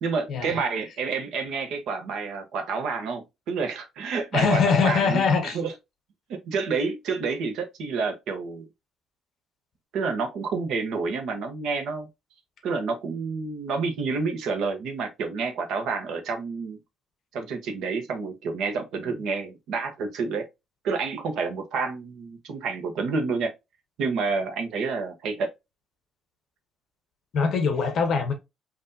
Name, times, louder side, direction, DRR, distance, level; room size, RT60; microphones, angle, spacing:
voice 1, 0.0-5.7 6.3-8.7 9.9-12.1 12.6-16.8 17.3-20.5 20.8-23.5 24.0-25.5, right 4 dB, 65° right, 1.0 m, -29 dB
voice 2, 4.3-5.6 27.3-28.3, left 5 dB, 45° left, 0.9 m, -22 dB
5.6 x 2.7 x 2.7 m
cardioid pair, 180°, 0 cm